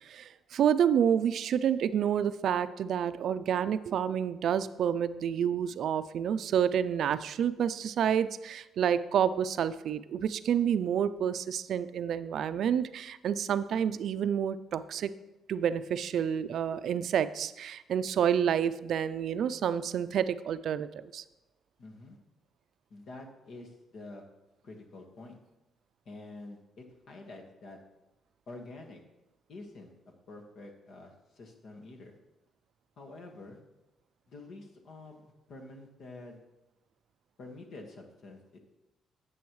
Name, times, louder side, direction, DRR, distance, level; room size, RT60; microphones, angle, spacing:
voice 1, 0.0-15.1 15.5-21.2, right 8 dB, 70° right, 14 dB, 0.4 m, -29 dB
voice 2, 21.8-22.2 22.9-24.2 24.6-25.4 26.0-27.8 28.5-29.0 29.5-29.9 30.3-32.2 33.0-33.6 34.3-36.4 37.4-38.6, left 2 dB, 65° left, 2 dB, 1.6 m, -47 dB
10.5 x 7.7 x 3.2 m, 0.96 s
cardioid pair, 90°, 0 cm